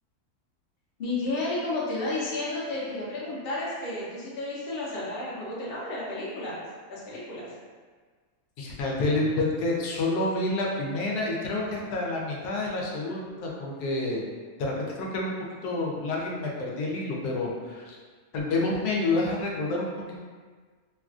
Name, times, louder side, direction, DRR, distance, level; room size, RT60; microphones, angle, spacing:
voice 1, 1.0-6.6 6.9-7.5, left 2 dB, 50° left, -7 dB, 0.8 m, -32 dB
voice 2, 8.6-14.2 14.6-15.4 15.6-18.0 18.3-20.3, left 2 dB, 90° left, -2 dB, 1.1 m, -28 dB
3.1 x 2.4 x 2.3 m, 1.5 s
omnidirectional pair, 1.6 m